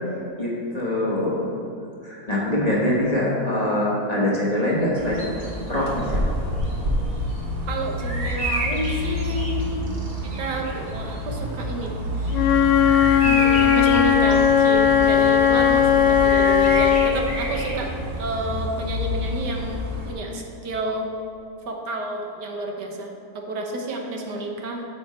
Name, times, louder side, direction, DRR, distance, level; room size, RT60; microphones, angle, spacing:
voice 1, 0.4-1.5 2.0-5.3 5.7-6.2 6.5-7.1, left 1 dB, 25° left, -6 dB, 1.4 m, -24 dB
Bird vocalization bird call bird song, 5.0-20.1, left 1 dB, 35° right, 1.4 m, -28 dB
voice 2, 7.7-9.7 10.2-12.5 13.1-17.9 18.2-21.1 21.7-24.8, right 2 dB, 70° right, 2 dB, 1.6 m, -30 dB
Wind instrument woodwind instrument, 12.3-17.1, left 8 dB, 85° left, 1.3 m, -17 dB
8.9 x 7.1 x 4.4 m, 2.7 s
omnidirectional pair, 1.9 m